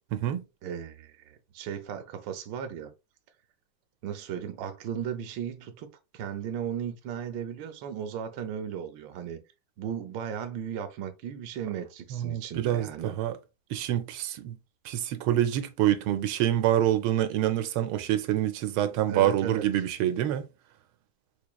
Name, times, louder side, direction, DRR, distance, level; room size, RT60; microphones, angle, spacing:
voice 1, 0.1-0.4 12.1-13.3 13.7-14.6 14.8-20.4, right 12 dB, 90° right, 1.4 m, -26 dB
voice 2, 0.6-2.9 4.0-5.9 6.1-9.4 9.8-13.2 19.1-19.7, right 8 dB, 70° right, 1.3 m, -36 dB
4.7 x 2.9 x 2.2 m
omnidirectional pair, 2.2 m